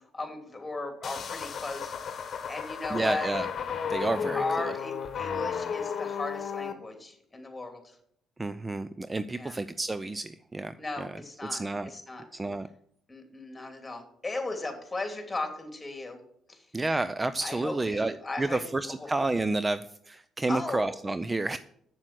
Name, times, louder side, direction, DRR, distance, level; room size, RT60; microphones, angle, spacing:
voice 1, 0.0-1.9 2.5-3.3 4.3-7.9 9.4-9.6 10.8-12.2 13.1-16.2 16.5-16.6 17.4-19.1 20.5-20.9, left 2 dB, 20° left, 4 dB, 3.1 m, -36 dB
sound 1, 1.0-6.7, left 7 dB, 50° left, 1.2 m, -33 dB
voice 2, 2.9-3.5 3.9-4.7 8.4-11.1 11.5-11.9 12.3-12.7 16.7-21.6, right 2 dB, 20° right, 13 dB, 0.5 m, -30 dB
7.9 x 7.3 x 7.6 m, 0.69 s
hypercardioid pair, 55°, 0 cm